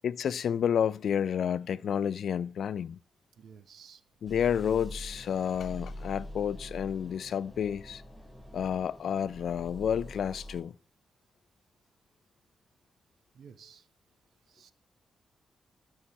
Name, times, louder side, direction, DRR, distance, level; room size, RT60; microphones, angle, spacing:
voice 1, 0.0-3.0 4.2-8.0 8.5-10.7, left 8 dB, 75° left, 0.3 m, -30 dB
voice 2, 3.4-4.0 13.3-13.9 14.5-14.7, right 7 dB, 80° right, 0.8 m, -53 dB
sound 1, 4.3-10.6, left 1 dB, ahead, 3.5 m, -45 dB
16.0 x 5.5 x 2.9 m
cardioid pair, 65°, 0 cm